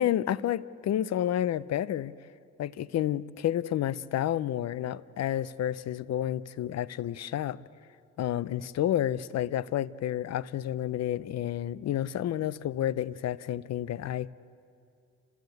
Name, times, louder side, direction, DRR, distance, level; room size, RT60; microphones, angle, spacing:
voice 1, 0.0-2.1 2.6-7.6 8.2-14.3, left 11 dB, 60° left, 18 dB, 0.6 m, -30 dB
29.5 x 14.5 x 8.0 m, 2.5 s
cardioid pair, 90°, 30 cm